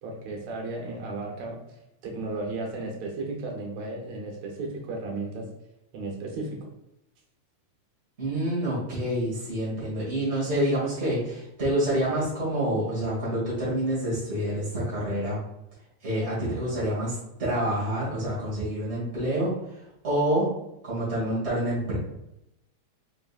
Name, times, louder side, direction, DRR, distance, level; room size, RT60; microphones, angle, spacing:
voice 1, 0.0-1.6 2.0-5.5 5.9-6.6, right 2 dB, 70° right, -1 dB, 2.3 m, -34 dB
voice 2, 8.2-15.4 16.0-20.5 20.8-22.0, right 1 dB, 30° right, -8 dB, 1.4 m, -27 dB
4.8 x 3.8 x 2.4 m, 0.86 s
omnidirectional pair, 3.3 m